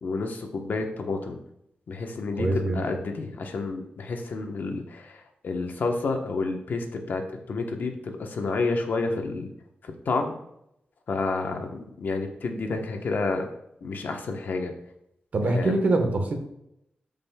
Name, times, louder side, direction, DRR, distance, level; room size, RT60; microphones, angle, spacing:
voice 1, 0.0-1.4 1.9-9.5 9.8-10.3 11.1-13.5 13.8-14.7 15.5-15.7, left 3 dB, 70° left, 4 dB, 1.1 m, -30 dB
voice 2, 2.4-3.0 15.3-16.3, right 2 dB, 55° right, 3 dB, 1.3 m, -24 dB
13.5 x 5.3 x 2.3 m, 0.79 s
wide cardioid pair, 135°, 3 cm